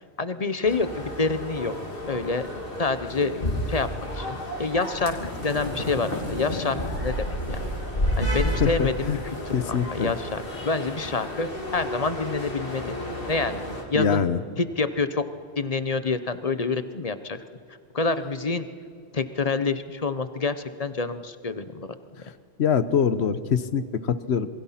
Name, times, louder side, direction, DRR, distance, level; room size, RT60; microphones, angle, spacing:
voice 1, 0.0-1.7 2.1-2.5 2.8-5.2 5.4-7.6 8.2-12.9 13.3-13.6 13.9-14.2 14.6-15.2 15.6-17.4 17.9-18.7 19.1-21.9, left 3 dB, 35° left, 12 dB, 0.9 m, -27 dB
sound 1, 0.6-13.8, left 1 dB, 55° left, 3.2 m, -31 dB
voice 2, 8.5-9.2 9.5-10.1 13.9-14.4 22.6-24.5, left 7 dB, 75° left, 14 dB, 1.2 m, -24 dB
27.0 x 21.5 x 5.8 m, 2.3 s
omnidirectional pair, 1.1 m